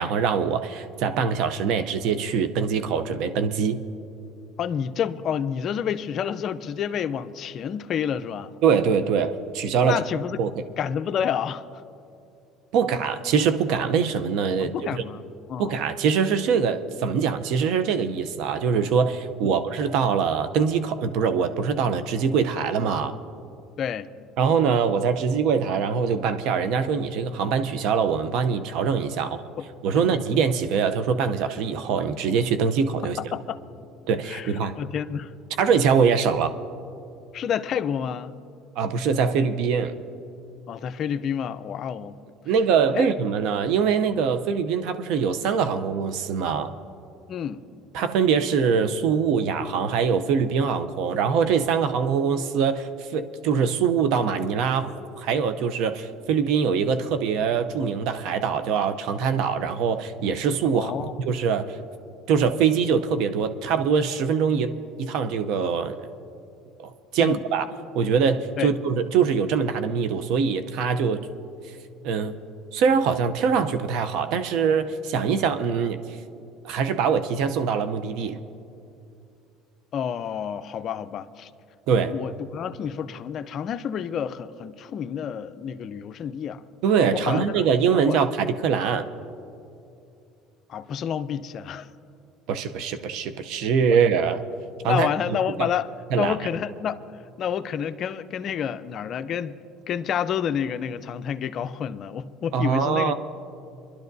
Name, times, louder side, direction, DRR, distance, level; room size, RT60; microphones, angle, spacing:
voice 1, 0.0-3.8 8.6-10.0 10.4-10.7 12.7-15.0 15.6-23.2 24.4-29.4 29.8-33.2 34.1-34.7 35.6-36.5 38.8-39.9 42.5-46.7 47.9-61.8 62.3-66.0 66.8-67.7 67.9-71.3 72.0-72.4 72.7-76.0 76.6-78.4 81.9-82.2 86.8-89.1 92.5-94.4 94.8-95.7 96.1-96.3 102.5-103.1, right 6 dB, 70° right, 0.6 m, -23 dB
voice 2, 4.6-8.5 9.8-10.4 10.8-11.8 14.6-15.2 15.5-15.8 19.4-19.6 23.8-24.1 29.2-29.3 29.6-29.7 29.9-30.1 33.2-33.6 34.3-35.3 37.3-38.3 40.7-42.2 42.9-43.1 47.3-47.6 60.7-61.1 67.2-67.4 68.6-68.7 79.9-81.5 82.0-86.6 87.1-88.2 90.7-91.9 94.8-95.9 96.2-97.0 97.4-99.6 99.9-103.1, left 8 dB, 45° left, 0.5 m, -29 dB
25.0 x 11.5 x 2.7 m
cardioid pair, 120°, 0 cm